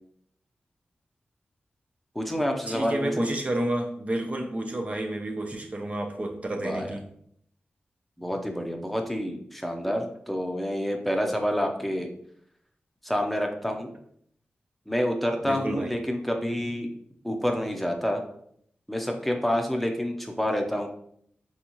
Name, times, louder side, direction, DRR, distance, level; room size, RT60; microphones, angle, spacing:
voice 1, 2.1-3.3 6.6-6.9 8.2-12.1 13.0-13.9 14.9-16.9 17.2-18.2 18.9-20.9, equal, 5° left, 2 dB, 0.7 m, -28 dB
voice 2, 2.7-7.0 15.4-15.9, right 1 dB, 35° right, 3 dB, 0.6 m, -30 dB
4.0 x 3.6 x 3.0 m, 0.67 s
cardioid pair, 65°, 4 cm